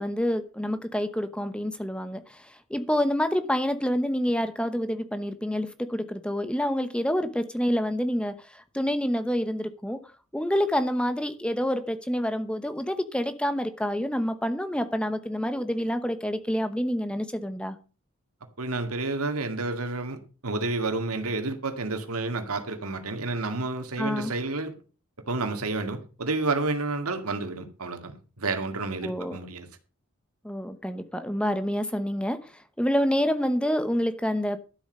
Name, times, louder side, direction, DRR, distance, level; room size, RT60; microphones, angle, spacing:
voice 1, 0.0-10.0 10.3-17.8 24.0-24.3 29.0-29.4 30.4-34.6, equal, 5° left, 0.8 m, -27 dB
voice 2, 18.6-24.7 25.3-29.7, right 3 dB, 90° right, 2.1 m, -30 dB
12.5 x 7.8 x 5.4 m
head